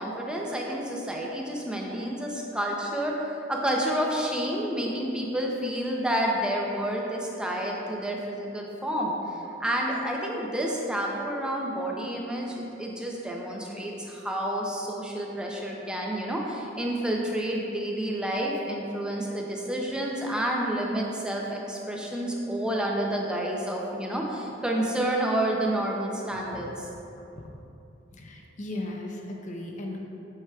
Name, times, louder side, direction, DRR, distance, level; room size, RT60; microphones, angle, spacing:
voice 1, 0.0-26.9, right 1 dB, 5° right, -2 dB, 0.6 m, -29 dB
voice 2, 28.2-30.0, left 1 dB, 40° left, 1 dB, 0.6 m, -36 dB
7.2 x 5.6 x 2.3 m, 2.8 s
head